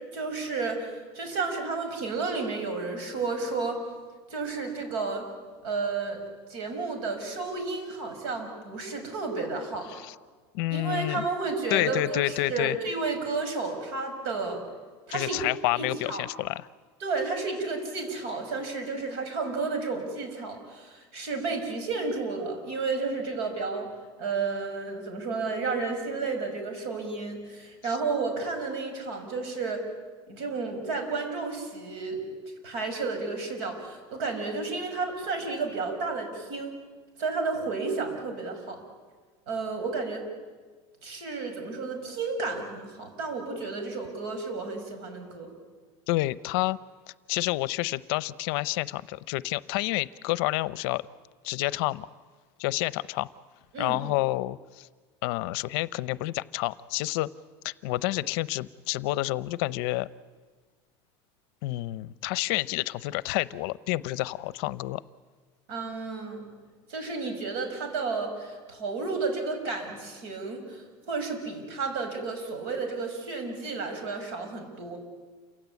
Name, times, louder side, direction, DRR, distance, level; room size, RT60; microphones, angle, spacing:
voice 1, 0.1-3.8 4.3-5.3 5.6-6.2 6.5-9.9 10.7-14.6 15.1-15.4 15.7-16.3 17.0-23.9 24.2-29.8 30.3-32.2 32.6-36.8 37.2-38.8 39.5-40.2 41.0-45.5 53.7-54.0 65.7-66.5 66.9-75.0, right 4 dB, 70° right, 5 dB, 6.1 m, -32 dB
voice 2, 10.5-11.3 11.7-12.8 15.1-16.6 27.9-28.0 46.1-46.8 47.3-51.0 51.4-52.1 52.6-53.3 53.8-54.9 55.2-57.3 57.6-60.1 61.6-65.0, left 18 dB, 65° left, 18 dB, 0.7 m, -29 dB
28.5 x 16.5 x 9.6 m, 1.4 s
cardioid pair, 165°, 14 cm